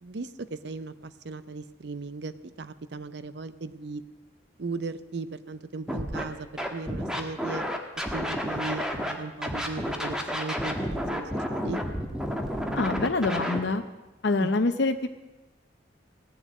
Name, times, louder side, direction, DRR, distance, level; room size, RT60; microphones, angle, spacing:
voice 1, 0.0-4.0 4.6-7.6 8.1-11.8 14.4-14.6, right 3 dB, 70° right, 13 dB, 0.6 m, -37 dB
Scratching (performance technique), 5.9-6.2 6.6-9.1 9.4-13.6, equal, 5° right, 1.3 m, -30 dB
voice 2, 12.8-13.8 14.2-15.1, left 3 dB, 70° left, 7 dB, 0.7 m, -25 dB
17.5 x 7.4 x 9.4 m, 1.1 s
head